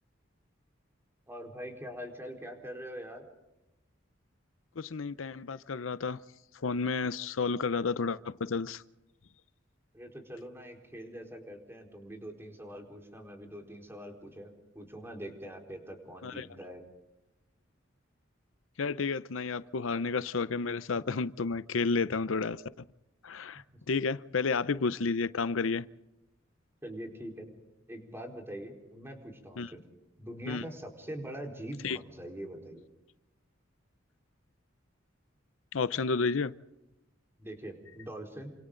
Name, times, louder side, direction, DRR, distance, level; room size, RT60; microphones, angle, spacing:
voice 1, 1.3-3.3 9.9-16.8 26.8-27.5 27.9-29.8 30.2-32.9 37.4-38.5, equal, 10° right, 4.3 m, -43 dB
voice 2, 4.8-6.2 6.6-8.8 16.2-16.5 18.8-22.6 23.2-25.9 29.6-29.7 30.5-30.6 31.8-32.0 35.7-36.5, left 4 dB, 80° left, 0.7 m, -31 dB
29.0 x 26.5 x 3.9 m
head